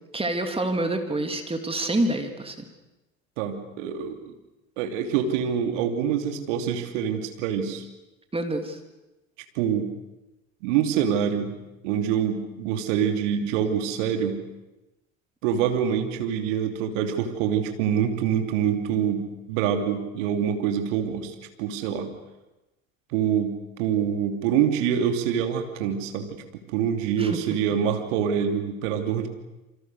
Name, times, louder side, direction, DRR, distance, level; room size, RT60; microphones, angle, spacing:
voice 1, 0.1-2.7 8.3-8.8 27.2-27.4, right 1 dB, 15° right, 5 dB, 3.2 m, -27 dB
voice 2, 3.4-4.3 4.8-7.8 9.5-9.9 10.6-11.6 11.8-14.4 15.4-22.1 23.1-26.4 26.7-29.3, right 8 dB, 60° right, 5 dB, 3.0 m, -25 dB
28.0 x 25.0 x 6.8 m, 1.0 s
figure-of-eight pair, 65°, 41 cm